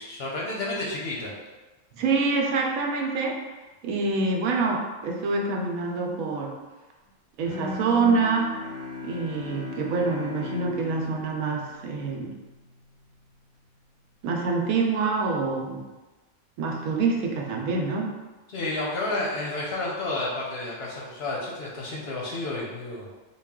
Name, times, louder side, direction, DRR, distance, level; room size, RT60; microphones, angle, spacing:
voice 1, 0.0-1.3 18.5-23.1, left 2 dB, 60° left, -4 dB, 0.7 m, -31 dB
voice 2, 2.0-3.3 3.8-6.5 7.4-8.5 9.0-12.3 14.2-15.8 16.6-18.1, right 4 dB, 80° right, 0 dB, 1.1 m, -26 dB
Bowed string instrument, 7.5-12.5, left 3 dB, 80° left, 0.3 m, -37 dB
3.5 x 2.3 x 3.6 m, 1.2 s
omnidirectional pair, 1.5 m